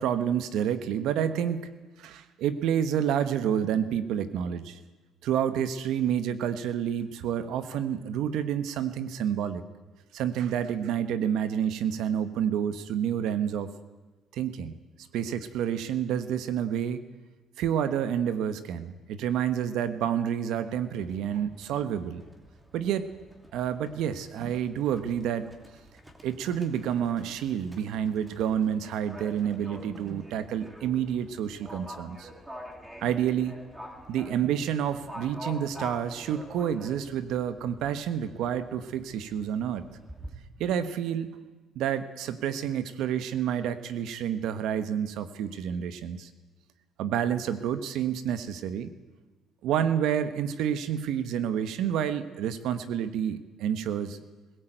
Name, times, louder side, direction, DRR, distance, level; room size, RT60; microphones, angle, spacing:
voice 1, 0.0-1.7 2.0-4.8 5.2-9.6 10.1-13.7 14.3-14.8 15.1-17.0 17.6-22.2 22.7-23.1 23.5-25.5 26.2-32.3 33.0-33.6 34.1-39.9 40.6-41.4 41.7-46.3 47.0-48.9 49.6-54.2, right 9 dB, 75° right, 12 dB, 1.2 m, -29 dB
Livestock farm animals working animals, 21.0-40.3, equal, 10° right, 2.4 m, -47 dB
20.5 x 17.0 x 9.1 m, 1.2 s
cardioid pair, 140°, 0 cm